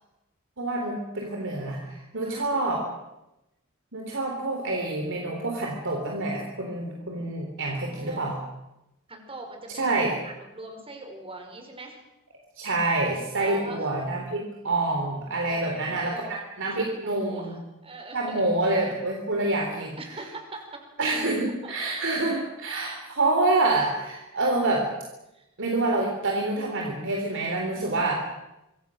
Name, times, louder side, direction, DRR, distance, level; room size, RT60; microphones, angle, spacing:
voice 1, 0.6-2.8 3.9-8.4 9.8-10.1 12.6-17.6 18.1-20.2 21.0-24.9 25.6-28.2, right 2 dB, 60° right, 1 dB, 3.7 m, -27 dB
voice 2, 2.2-2.8 7.7-8.3 9.1-10.0 10.2-12.0 13.3-13.9 15.4-16.3 16.8-17.6 17.8-18.4 20.0-20.8 21.6-22.0 25.3-25.5 27.7-28.0, right 2 dB, 25° right, 4 dB, 5.2 m, -42 dB
26.0 x 24.0 x 6.4 m, 0.95 s
head